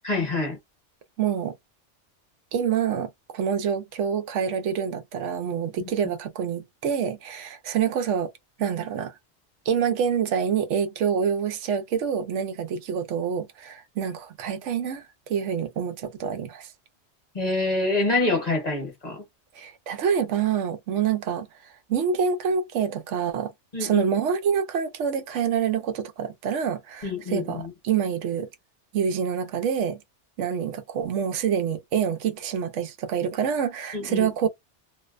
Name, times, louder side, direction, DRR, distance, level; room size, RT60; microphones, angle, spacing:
voice 1, 0.0-0.6 5.8-5.9 17.3-19.2 23.7-24.1 27.0-27.7 33.9-34.3, left 2 dB, 35° left, 1.1 m, -26 dB
voice 2, 1.2-1.6 2.5-8.3 8.6-9.1 9.7-15.0 15.3-16.7 19.6-23.5 23.8-28.5 28.9-30.0 30.4-34.5, right 7 dB, 90° right, 0.9 m, -26 dB
2.6 x 2.1 x 2.3 m
omnidirectional pair, 1.2 m